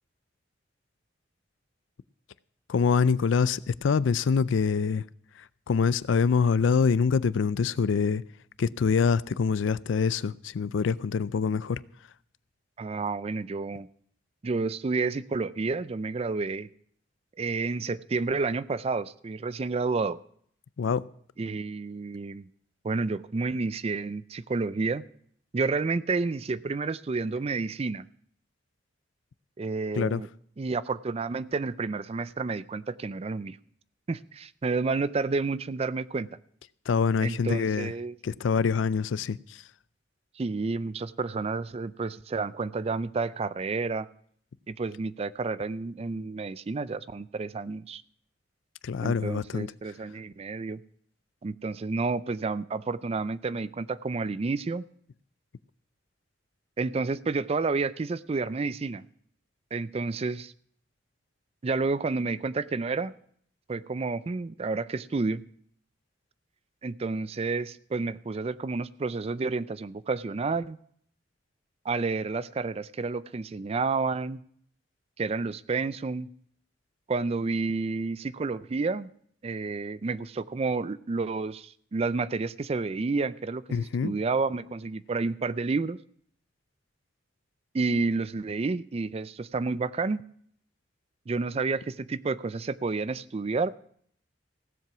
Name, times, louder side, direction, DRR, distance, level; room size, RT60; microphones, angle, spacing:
voice 1, 2.7-5.0 5.7-8.2 8.6-11.8 20.8-21.1 30.0-30.2 36.9-37.9 38.2-39.6 48.8-49.7 83.7-84.1, left 5 dB, 85° left, 0.4 m, -25 dB
voice 2, 12.8-13.9 14.4-16.7 17.4-20.2 21.4-22.5 22.8-25.0 25.5-28.0 29.6-30.3 30.6-33.6 34.1-36.3 37.2-38.2 40.4-44.1 44.7-48.0 49.0-50.8 51.4-54.8 56.8-59.0 59.7-60.5 61.6-63.1 63.7-65.4 66.8-70.8 71.9-74.4 75.2-76.3 77.1-79.1 79.4-86.0 87.7-90.2 91.3-93.7, right 4 dB, 35° right, 0.4 m, -30 dB
16.0 x 7.5 x 6.0 m
head